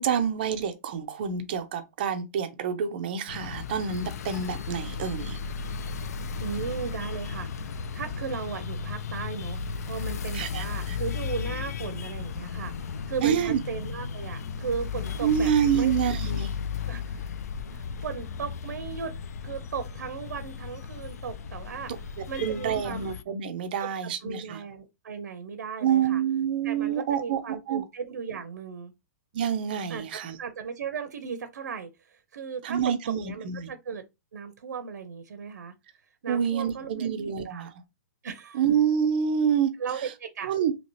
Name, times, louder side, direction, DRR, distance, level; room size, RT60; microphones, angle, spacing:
voice 1, 0.0-5.4 10.3-11.0 13.2-13.6 15.2-16.5 22.4-24.6 25.8-27.8 29.3-30.4 32.6-33.7 36.3-37.7 38.5-39.7 40.4-40.7, right 8 dB, 35° right, 0.4 m, -27 dB
sound 1, 3.3-23.2, left 5 dB, 65° left, 0.3 m, -35 dB
voice 2, 6.4-15.5 15.7-16.0 16.9-17.3 17.7-19.1 19.4-21.9 22.3-23.0 23.8-26.2 26.6-28.9 29.9-34.0 34.3-35.7 36.2-37.1 37.5-37.7 38.2-38.6 39.8-40.5, right 6 dB, 90° right, 0.6 m, -36 dB
2.8 x 2.7 x 3.0 m
hypercardioid pair, 170°, 9 cm